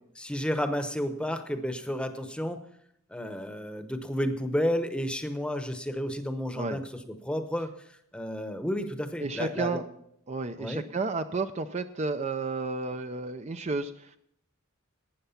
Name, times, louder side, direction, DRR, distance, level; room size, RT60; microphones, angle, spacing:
voice 1, 0.2-2.6 3.1-7.7 8.1-9.8 10.6-10.8, equal, 5° left, 8 dB, 0.9 m, -31 dB
voice 2, 9.2-9.8 10.3-14.2, right 3 dB, 30° right, 9 dB, 0.5 m, -32 dB
12.5 x 9.2 x 5.7 m, 0.73 s
head